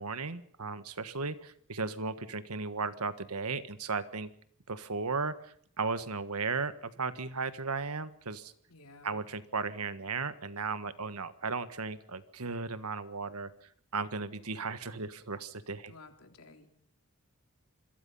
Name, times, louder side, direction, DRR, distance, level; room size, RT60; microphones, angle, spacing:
voice 1, 0.0-4.3 4.7-8.5 9.0-13.5 13.9-15.9, right 4 dB, 90° right, 12 dB, 1.6 m, -35 dB
voice 2, 8.7-9.3 15.9-16.7, left 3 dB, 85° left, 5 dB, 3.4 m, -54 dB
27.0 x 22.0 x 5.6 m, 0.62 s
head